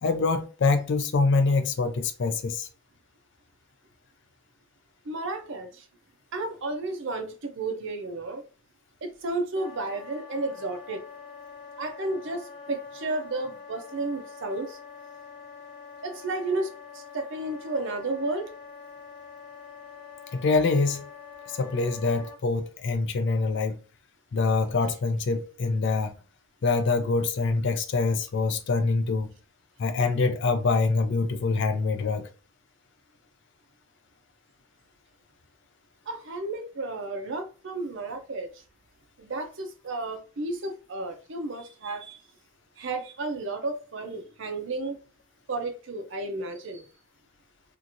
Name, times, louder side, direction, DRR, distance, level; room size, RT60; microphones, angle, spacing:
voice 1, 0.0-2.7 20.3-21.1 21.6-23.8 24.3-26.1 26.6-29.3 29.8-32.3, left 3 dB, 55° left, 0.4 m, -25 dB
voice 2, 5.0-5.9 6.3-8.4 9.0-11.0 11.8-14.8 16.0-18.5 36.1-38.6 39.2-42.2 42.8-45.0 45.5-46.9, right 2 dB, 60° right, 0.5 m, -32 dB
Wind instrument woodwind instrument, 9.5-22.4, left 6 dB, 20° left, 0.8 m, -45 dB
2.9 x 2.5 x 2.6 m
head